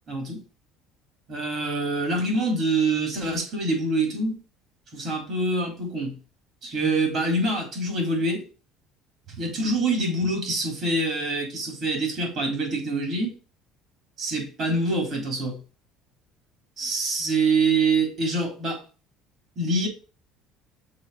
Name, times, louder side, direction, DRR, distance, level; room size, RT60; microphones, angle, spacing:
voice 1, 0.1-0.4 1.3-4.4 4.9-6.1 6.6-8.5 9.4-13.3 14.2-15.6 16.8-18.8 19.6-19.9, right 2 dB, 45° right, 3.8 m, -25 dB
6.4 x 4.3 x 5.1 m
cardioid pair, 120°, 0 cm